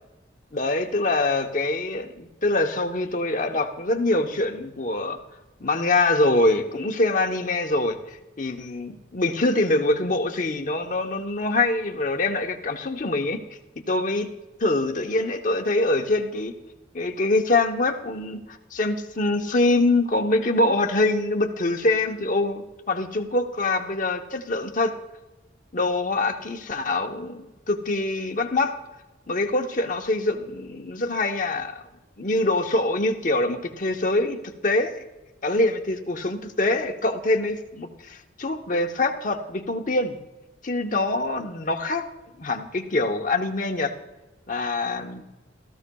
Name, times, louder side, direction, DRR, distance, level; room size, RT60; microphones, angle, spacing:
voice 1, 0.5-5.2 5.6-13.4 13.9-14.3 14.6-16.5 16.9-25.0 25.7-28.8 29.3-31.8 32.2-34.9 35.4-40.2 40.6-42.1 42.4-43.9 44.5-45.2, left 2 dB, 45° left, 4 dB, 0.9 m, -24 dB
16.5 x 13.5 x 2.3 m, 1.1 s
head